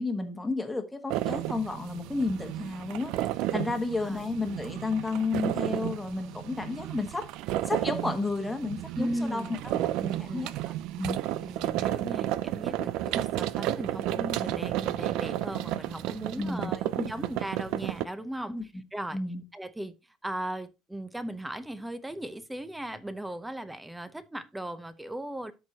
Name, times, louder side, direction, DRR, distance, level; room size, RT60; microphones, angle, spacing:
voice 1, 0.0-3.1 3.5-7.3 7.6-9.7 10.2-10.5 11.0-11.2 16.4-16.7 17.0-17.3 18.5-18.6 19.1-19.4, left 3 dB, 10° left, 1.4 m, -32 dB
sound 1, 1.1-18.1, right 14 dB, 70° right, 0.4 m, -32 dB
voice 2, 3.6-4.2 8.1-8.2 8.9-10.5 11.2-19.2 19.5-20.0 20.2-25.5, right 1 dB, 5° right, 0.8 m, -37 dB
13.0 x 4.7 x 2.9 m
cardioid pair, 125°, 0 cm